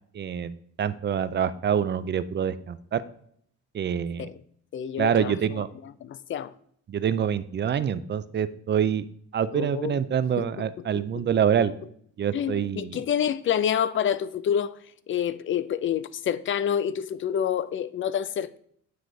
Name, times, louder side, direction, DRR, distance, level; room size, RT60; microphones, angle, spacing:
voice 1, 0.1-3.0 3.7-4.3 5.0-5.7 6.9-9.1 9.3-11.7 12.2-13.0, right 8 dB, 35° right, 0.4 m, -26 dB
voice 2, 4.7-5.3 6.0-6.5 9.5-10.0 11.1-11.2 12.3-14.7 15.1-18.6, left 9 dB, 45° left, 0.4 m, -27 dB
9.4 x 3.2 x 3.9 m
cardioid pair, 90°, 30 cm